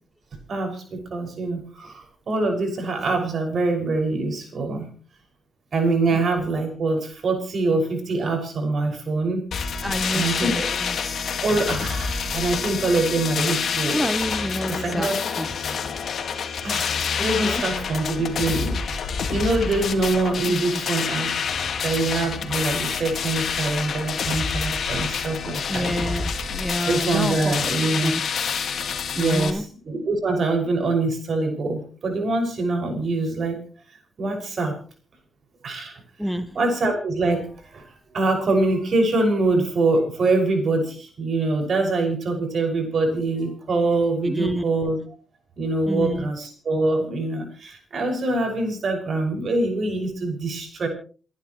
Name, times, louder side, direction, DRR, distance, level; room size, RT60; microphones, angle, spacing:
voice 1, 0.5-4.9 5.7-9.4 10.1-10.7 11.4-14.1 14.7-15.2 16.6-21.4 21.8-25.9 26.9-28.1 29.2-33.6 34.2-34.8 35.6-35.9 36.5-37.8 38.1-45.0 45.6-50.9, right 2 dB, 60° right, 3 dB, 6.2 m, -24 dB
sound 1, 9.5-29.5, left 6 dB, 65° left, 1.9 m, -27 dB
voice 2, 9.8-11.3 13.9-15.1 15.4-15.5 17.4-17.6 20.4-20.8 25.7-27.6 28.0-28.2 29.2-29.7 36.2-36.6 44.2-44.8 45.9-46.3, equal, ahead, 11 dB, 1.0 m, -28 dB
29.5 x 10.5 x 3.2 m, 0.38 s
cardioid pair, 60°, 0 cm